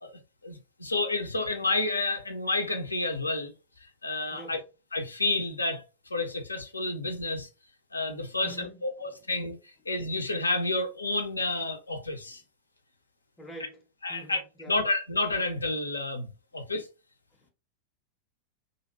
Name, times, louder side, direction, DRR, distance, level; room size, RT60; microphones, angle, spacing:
voice 1, 0.0-3.5 4.0-4.6 4.9-7.5 7.9-12.4 14.0-14.4 14.7-16.9, left 2 dB, 80° left, 0.4 m, -30 dB
voice 2, 4.3-4.6 8.3-8.8 12.3-12.4 13.4-13.8 14.1-14.8 17.3-17.5, right 2 dB, 10° left, 0.5 m, -46 dB
2.4 x 2.0 x 2.6 m
figure-of-eight pair, 90°, 0 cm